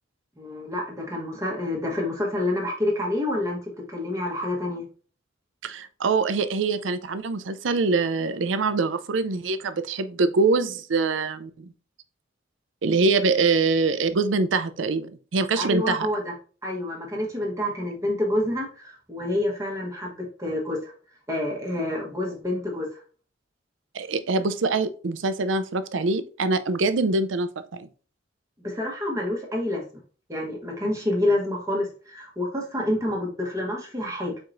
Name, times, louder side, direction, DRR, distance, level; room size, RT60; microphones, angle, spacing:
voice 1, 0.4-3.6 3.9-4.8 15.6-16.3 16.6-20.9 21.3-23.0 28.6-29.8 30.3-34.4, left 1 dB, 15° right, 1.1 m, -28 dB
voice 2, 5.6-11.7 12.8-16.1 23.9-27.9, right 3 dB, 75° right, 0.5 m, -24 dB
4.7 x 4.4 x 2.5 m
head